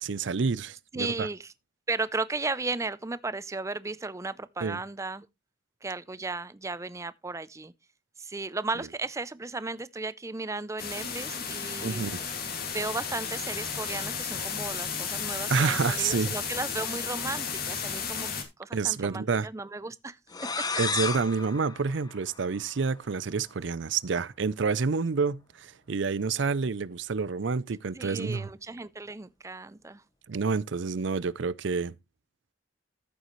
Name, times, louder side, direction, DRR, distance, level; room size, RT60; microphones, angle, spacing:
voice 1, 0.0-1.3 4.6-4.8 11.8-12.2 15.5-16.4 18.7-19.5 20.8-28.5 30.3-31.9, right 5 dB, 70° right, 0.5 m, -28 dB
voice 2, 0.9-1.5 1.9-5.3 5.8-7.7 8.2-12.1 12.7-18.3 18.6-20.2 27.9-30.0, right 3 dB, 15° right, 0.5 m, -35 dB
sound 1, 10.8-18.4, left 6 dB, 50° left, 2.3 m, -33 dB
sound 2, 20.3-22.9, left 4 dB, 20° left, 0.7 m, -33 dB
14.0 x 6.9 x 3.1 m
head